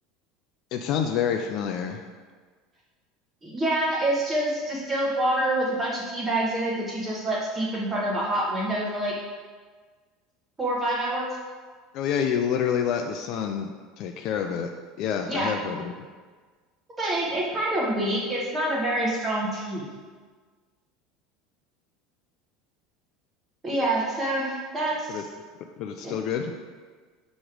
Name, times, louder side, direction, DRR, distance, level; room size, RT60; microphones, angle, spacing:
voice 1, 0.7-2.0 11.9-13.7 14.0-14.7 15.0-15.9 25.1-25.2 25.8-26.5, left 8 dB, 40° left, 4 dB, 0.3 m, -27 dB
voice 2, 3.4-9.1 10.6-11.3 15.3-15.5 17.0-19.8 23.6-25.2 26.0-26.1, right 1 dB, 15° right, -4 dB, 1.0 m, -26 dB
6.3 x 3.0 x 5.0 m, 1.5 s
cardioid pair, 180°, 0 cm